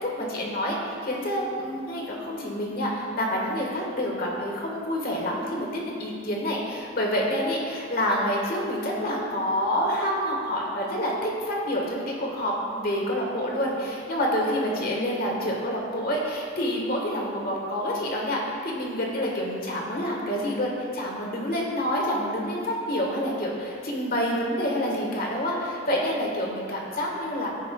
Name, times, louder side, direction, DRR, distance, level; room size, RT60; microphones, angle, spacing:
voice 1, 0.0-27.5, equal, 50° left, -2 dB, 1.4 m, -28 dB
14.5 x 5.4 x 2.3 m, 2.4 s
head